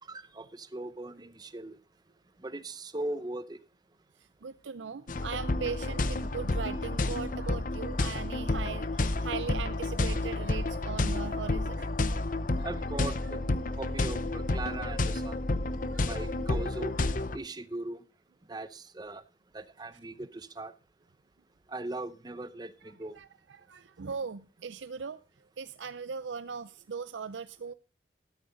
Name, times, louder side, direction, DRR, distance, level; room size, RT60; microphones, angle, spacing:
voice 1, 0.1-1.8 2.4-3.6 12.6-13.4 13.8-15.4 16.1-16.9 17.3-18.0 18.5-19.2 19.5-20.7 21.7-23.2, right 2 dB, 20° right, 0.7 m, -39 dB
voice 2, 4.4-11.9 12.3-12.7 15.9-16.3 23.2-25.2 25.6-27.7, right 5 dB, 85° right, 0.5 m, -39 dB
sound 1, 5.1-17.4, left 2 dB, 45° left, 0.7 m, -30 dB
13.5 x 12.5 x 3.9 m
head